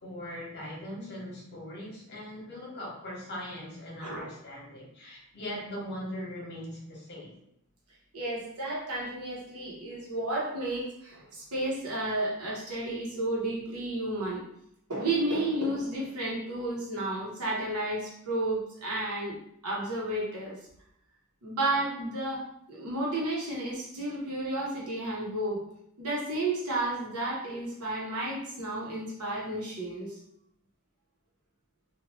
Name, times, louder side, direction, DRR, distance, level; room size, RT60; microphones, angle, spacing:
voice 1, 0.0-7.3, left 1 dB, 50° left, -3 dB, 1.0 m, -40 dB
voice 2, 4.0-4.3 8.1-14.4 14.9-19.4 19.6-20.6 21.4-22.4 22.7-25.6 26.0-30.2, right 1 dB, 85° right, -4 dB, 1.1 m, -32 dB
2.7 x 2.5 x 3.0 m, 0.74 s
head